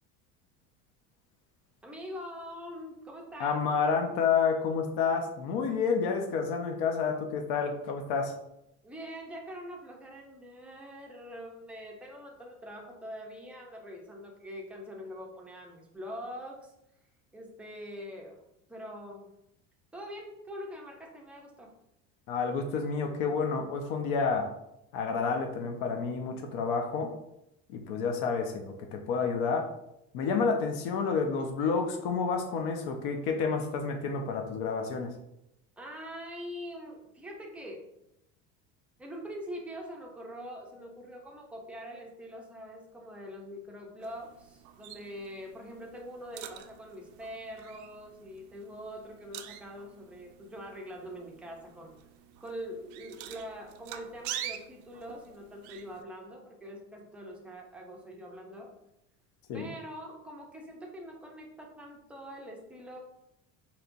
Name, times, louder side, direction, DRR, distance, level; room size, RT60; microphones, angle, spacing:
voice 1, 1.8-3.6 8.8-16.7 17.3-18.4 18.7-19.3 19.9-21.7 35.8-37.9 39.0-51.9 52.4-58.7 59.5-63.0, equal, 5° right, -1 dB, 0.5 m, -44 dB
voice 2, 3.4-8.3 22.3-24.5 24.9-27.1 27.7-29.7 30.1-35.1 59.5-59.7, left 5 dB, 65° left, 4 dB, 0.7 m, -29 dB
sound 1, 44.0-56.0, right 11 dB, 75° right, 0.5 m, -46 dB
5.0 x 2.9 x 2.5 m, 0.82 s
cardioid pair, 155°, 34 cm